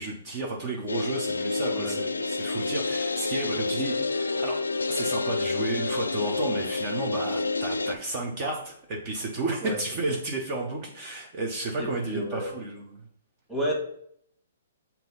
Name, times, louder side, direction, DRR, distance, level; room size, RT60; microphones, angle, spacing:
voice 1, 0.0-4.6 4.9-13.0, right 2 dB, 35° right, 0 dB, 1.0 m, -32 dB
sound 1, 0.9-7.9, left 3 dB, 90° left, 0.4 m, -28 dB
voice 2, 11.8-12.5 13.5-13.7, right 1 dB, 5° right, -2 dB, 1.7 m, -31 dB
5.9 x 2.9 x 5.5 m, 0.69 s
hypercardioid pair, 130°, 0 cm